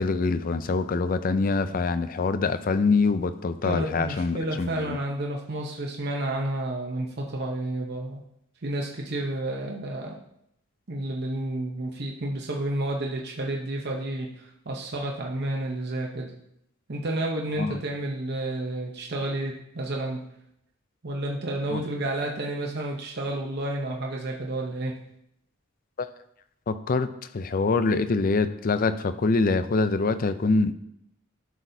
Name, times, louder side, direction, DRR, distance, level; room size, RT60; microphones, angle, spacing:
voice 1, 0.0-5.0 17.6-17.8 21.7-21.8 26.0-26.1 26.7-27.1 27.3-30.7, left 3 dB, 45° left, 12 dB, 0.4 m, -24 dB
voice 2, 3.7-8.2 8.6-10.1 10.9-16.3 16.9-20.2 21.0-25.0, right 1 dB, 50° right, -1 dB, 0.9 m, -30 dB
11.5 x 6.1 x 2.7 m, 0.76 s
head